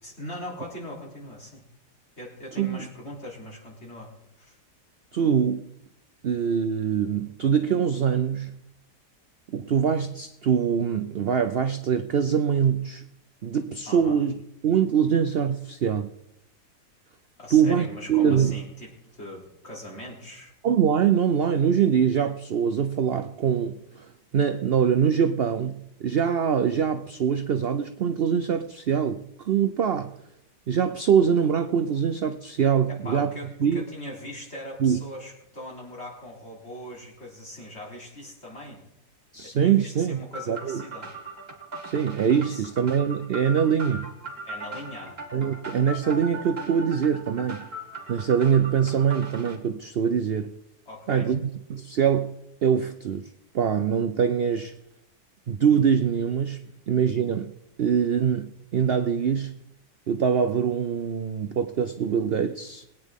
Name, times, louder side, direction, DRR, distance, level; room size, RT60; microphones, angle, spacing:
voice 1, 0.0-1.6 2.2-4.6 13.9-14.2 17.4-20.5 32.9-38.8 39.4-41.1 42.4-42.7 44.4-45.2 50.9-51.3 56.6-56.7, left 1 dB, 40° left, 3.7 m, -40 dB
voice 2, 2.6-2.9 5.1-5.7 6.2-8.5 9.5-13.0 13.4-14.3 14.6-16.1 17.5-18.5 20.6-30.1 30.7-33.3 33.6-33.8 34.8-35.0 39.3-40.8 41.8-44.1 45.3-47.7 48.1-50.5 51.1-51.4 51.7-52.3 52.6-54.7 55.5-56.6 56.9-57.5 57.8-59.5 60.1-62.8, right 7 dB, 70° right, 0.5 m, -23 dB
sound 1, 40.3-49.6, right 2 dB, 35° right, 2.4 m, -39 dB
21.5 x 9.4 x 3.6 m
omnidirectional pair, 1.7 m